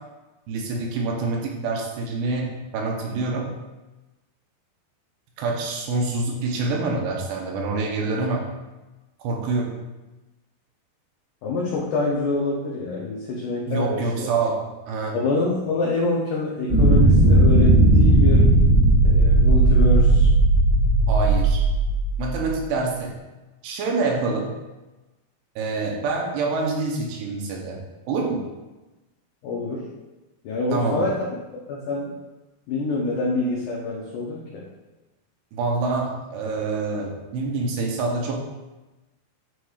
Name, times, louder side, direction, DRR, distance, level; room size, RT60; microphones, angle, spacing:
voice 1, 0.5-3.5 5.4-8.4 9.2-9.7 13.7-14.6 14.9-15.2 21.1-21.6 22.2-23.1 23.6-24.5 25.6-27.8 28.1-28.4 30.7-31.0 35.5-38.4, right 3 dB, 80° right, 0 dB, 3.0 m, -26 dB
voice 2, 11.4-14.3 15.1-18.5 19.0-20.3 29.4-29.9 30.4-31.2 31.7-32.1 32.7-34.7, left 2 dB, 80° left, -4 dB, 1.8 m, -26 dB
sound 1, 16.7-22.4, right 2 dB, 30° right, 1.2 m, -16 dB
9.5 x 4.8 x 2.4 m, 1.1 s
omnidirectional pair, 4.7 m